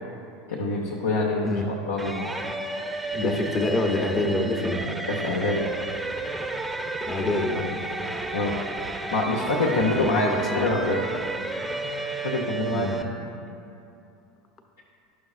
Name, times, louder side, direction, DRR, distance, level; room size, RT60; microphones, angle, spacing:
voice 1, 0.5-2.3 3.2-3.4 5.1-5.6 8.3-8.6 9.1-10.3 10.5-11.0 12.2-12.9, left 2 dB, 85° left, -4 dB, 0.7 m, -25 dB
sound 1, 2.0-13.0, right 2 dB, 10° right, 0.5 m, -32 dB
voice 2, 3.1-4.9 7.0-7.8 9.8-11.0 12.7-13.1, left 2 dB, 30° left, 3 dB, 0.7 m, -27 dB
11.0 x 6.2 x 2.4 m, 2.7 s
hypercardioid pair, 85°, 0 cm